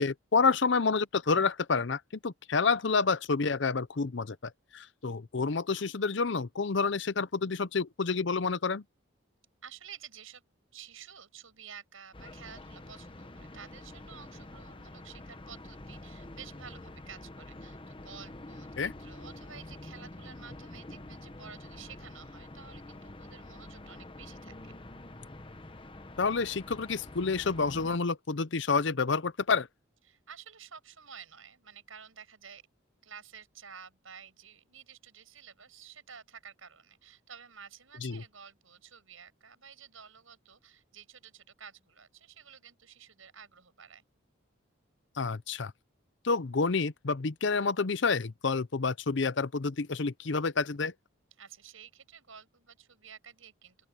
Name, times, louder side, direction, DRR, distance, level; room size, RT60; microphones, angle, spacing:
voice 1, 0.0-8.8 18.8-18.9 26.2-29.7 38.0-38.2 45.2-45.7 46.2-50.9, left 4 dB, 60° left, 0.7 m, -29 dB
voice 2, 9.6-10.4 10.7-24.7 30.1-32.6 33.0-44.0 51.4-53.9, right 7 dB, 85° right, 7.1 m, -51 dB
sound 1, 12.1-28.0, left 1 dB, 25° left, 1.0 m, -47 dB
open air
head